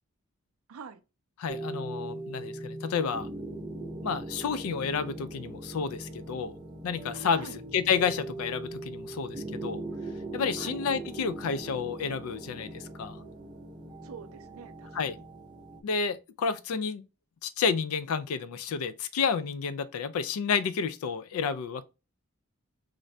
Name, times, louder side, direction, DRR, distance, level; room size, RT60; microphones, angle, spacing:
voice 1, 0.7-1.0 7.3-7.6 10.6-10.8 14.0-15.3, right 6 dB, 75° right, 0.4 m, -46 dB
voice 2, 1.4-3.3 4.0-6.6 6.8-9.8 10.3-13.2 14.9-15.2 15.8-17.1 17.4-21.8, left 6 dB, 75° left, 0.3 m, -30 dB
sound 1, 1.5-15.8, right 2 dB, 20° right, 0.5 m, -40 dB
2.5 x 2.2 x 4.0 m
head